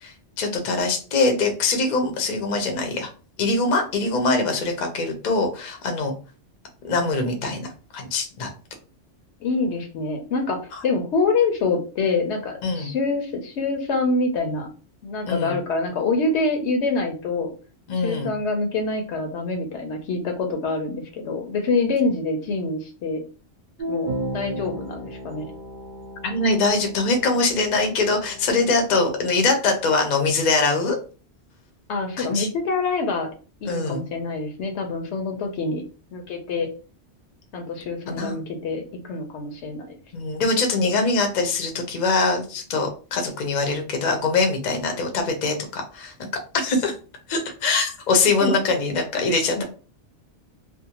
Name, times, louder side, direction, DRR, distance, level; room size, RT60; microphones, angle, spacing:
voice 1, 0.0-3.1 3.4-6.1 6.8-8.5 10.7-10.8 12.6-12.9 15.2-15.5 17.9-18.3 26.2-31.0 32.2-32.5 33.6-34.0 38.1-38.4 40.1-46.1 46.5-46.9 47.3-49.6, left 3 dB, 50° left, 4 dB, 0.6 m, -23 dB
voice 2, 9.4-10.6 10.8-14.7 15.0-17.5 18.0-23.2 23.9-25.5 31.9-33.3 33.6-35.8 36.1-36.7 37.5-40.0 48.4-48.6 49.6-49.7, left 3 dB, 75° left, 4 dB, 0.9 m, -25 dB
sound 1, 23.8-29.1, right 1 dB, 55° right, 0.6 m, -34 dB
2.5 x 2.0 x 2.8 m, 0.37 s
omnidirectional pair, 1.2 m